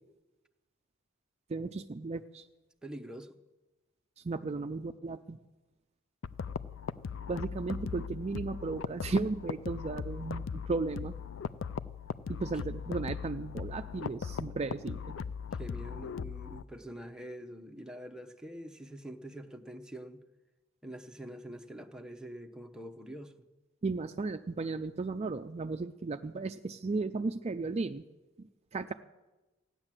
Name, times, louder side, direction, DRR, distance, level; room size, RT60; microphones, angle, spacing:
voice 1, 1.5-2.4 4.2-5.4 7.3-11.1 12.3-15.1 23.8-28.0 28.4-28.9, right 3 dB, 35° right, 8 dB, 0.4 m, -35 dB
voice 2, 2.8-3.4 15.5-20.2 20.8-23.3, equal, 5° right, 4 dB, 0.8 m, -45 dB
sound 1, 6.2-16.6, left 6 dB, 85° left, 0.5 m, -39 dB
15.0 x 9.8 x 7.5 m, 1.1 s
head